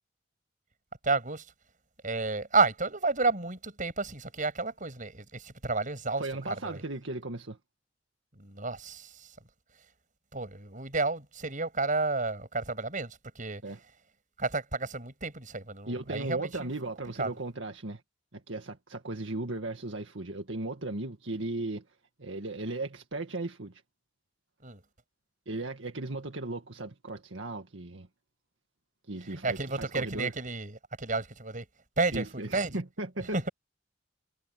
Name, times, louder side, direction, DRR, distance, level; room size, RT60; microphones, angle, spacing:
voice 1, 1.0-1.5 2.0-6.8 8.4-9.3 10.3-13.6 14.4-16.7 17.2-17.3 24.6-24.8 29.3-31.7 32.0-32.8 33.3-33.5, right 3 dB, 45° right, 7.6 m, -31 dB
voice 2, 6.2-7.6 13.6-13.8 15.9-18.0 18.3-21.9 22.2-23.8 25.5-28.1 29.1-30.3 32.1-33.5, right 2 dB, 85° right, 1.9 m, -36 dB
head